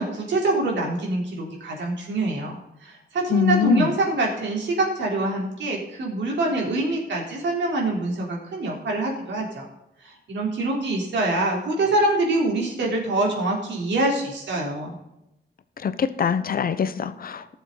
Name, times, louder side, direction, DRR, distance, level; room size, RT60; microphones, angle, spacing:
voice 1, 0.0-2.6 2.8-9.6 10.3-15.0, right 2 dB, 85° right, -1 dB, 3.8 m, -25 dB
voice 2, 3.3-3.9 15.8-17.5, left 6 dB, 55° left, 12 dB, 0.9 m, -23 dB
18.0 x 7.2 x 4.0 m, 0.88 s
wide cardioid pair, 140°, 18 cm